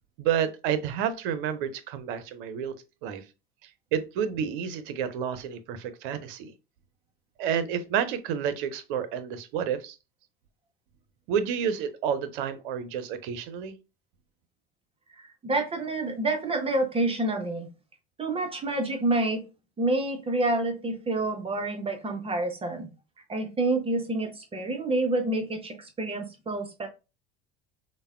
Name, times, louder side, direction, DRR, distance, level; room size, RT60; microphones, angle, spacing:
voice 1, 0.2-2.7 3.0-3.2 3.9-6.5 7.4-10.0 11.3-13.8, right 8 dB, 65° right, 0.6 m, -30 dB
voice 2, 15.2-17.7 18.2-19.4 19.8-22.9 23.3-26.9, right 2 dB, 20° right, 0.6 m, -28 dB
3.3 x 2.1 x 2.3 m
hypercardioid pair, 80°, 29 cm